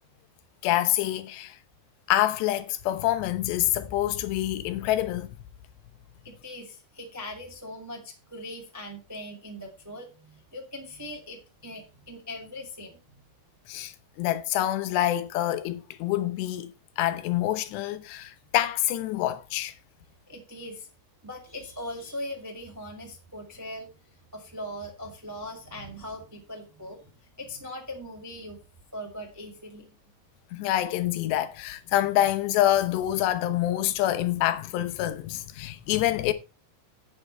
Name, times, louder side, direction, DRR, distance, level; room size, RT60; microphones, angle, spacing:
voice 1, 0.6-1.6 2.1-5.3 13.7-19.7 30.5-36.3, left 13 dB, 85° left, 3.2 m, -26 dB
voice 2, 6.2-13.2 20.3-20.9 21.2-23.9 24.3-28.6 28.9-30.0, left 1 dB, 10° right, 1.0 m, -40 dB
10.5 x 8.7 x 4.2 m
omnidirectional pair, 4.8 m